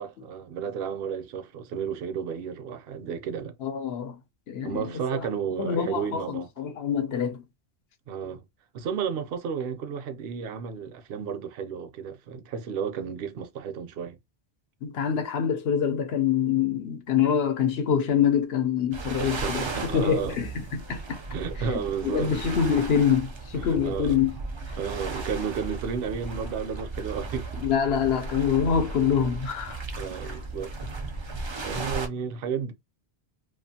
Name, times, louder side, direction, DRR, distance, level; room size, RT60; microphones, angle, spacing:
voice 1, 0.0-3.5 4.6-6.5 8.1-8.4 8.7-14.2 19.2-20.4 21.3-22.5 23.5-24.1 24.8-27.6 30.0-30.7 31.6-32.7, right 7 dB, 70° right, 0.8 m, -32 dB
voice 2, 3.6-4.2 4.5-5.3 5.6-7.4 14.8-19.6 19.9-21.2 22.0-24.3 27.6-29.8, left 8 dB, 70° left, 0.9 m, -25 dB
sound 1, 18.9-32.1, right 3 dB, 45° right, 0.4 m, -36 dB
2.5 x 2.4 x 2.7 m
omnidirectional pair, 1.1 m